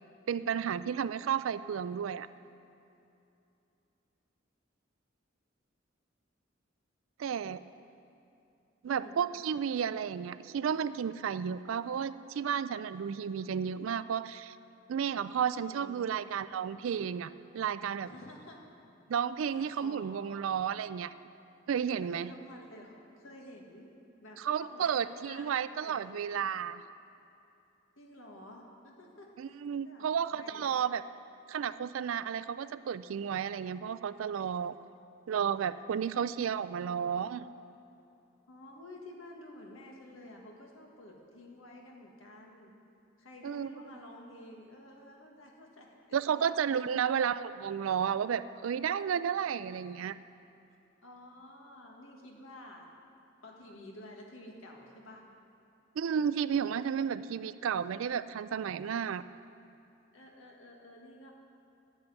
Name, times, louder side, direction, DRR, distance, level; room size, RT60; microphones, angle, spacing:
voice 1, 0.3-2.3 7.2-7.6 8.8-14.6 14.9-18.1 19.1-21.1 21.7-22.3 24.4-26.8 29.4-31.0 31.5-34.7 35.3-37.5 43.4-43.7 46.1-50.2 56.0-59.2, right 7 dB, 85° right, 15 dB, 0.4 m, -32 dB
voice 2, 8.8-9.2 15.7-16.4 18.0-18.6 19.4-20.4 22.0-26.4 28.0-29.6 29.8-30.7 36.8-37.0 38.5-42.7 43.2-46.2 46.7-47.2 51.0-52.9 53.4-55.2 60.1-61.3, left 1 dB, 90° left, 0 dB, 1.7 m, -51 dB
10.5 x 6.7 x 9.1 m, 2.7 s
head